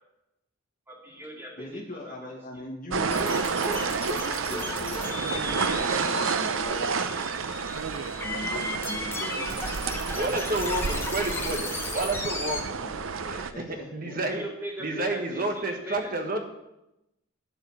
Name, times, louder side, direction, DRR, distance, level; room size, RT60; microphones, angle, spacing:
voice 1, 0.9-2.3 8.7-8.8 14.3-16.1, right 1 dB, 10° right, -3 dB, 2.5 m, -40 dB
voice 2, 1.6-3.4 4.4-7.0 8.2-9.6 12.8-12.9 13.5-14.4, left 1 dB, 40° left, 0 dB, 1.5 m, -40 dB
sound 1, 2.9-13.5, right 5 dB, 70° right, 0.6 m, -30 dB
sound 2, 3.1-12.6, left 2 dB, 10° left, 0.9 m, -36 dB
voice 3, 9.7-12.7 13.3-14.4 14.8-16.5, right 2 dB, 45° right, 4 dB, 1.4 m, -30 dB
11.5 x 5.1 x 7.3 m, 0.90 s
head